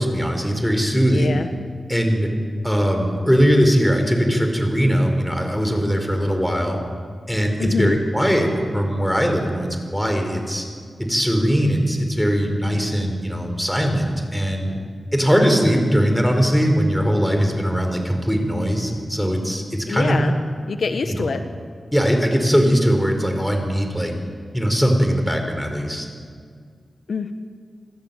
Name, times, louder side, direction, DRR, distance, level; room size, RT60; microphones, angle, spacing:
voice 1, 0.0-1.4 1.9-2.3 2.6-6.8 7.3-10.6 11.0-14.7 15.1-20.2 21.0-21.3 21.9-24.1 24.5-26.1, equal, ahead, 4 dB, 4.6 m, -20 dB
voice 2, 1.1-1.5 7.6-8.0 19.9-20.3 20.7-21.4 27.1-27.3, left 4 dB, 70° left, 7 dB, 1.3 m, -24 dB
27.5 x 17.0 x 9.0 m, 2.1 s
wide cardioid pair, 100°, 0 cm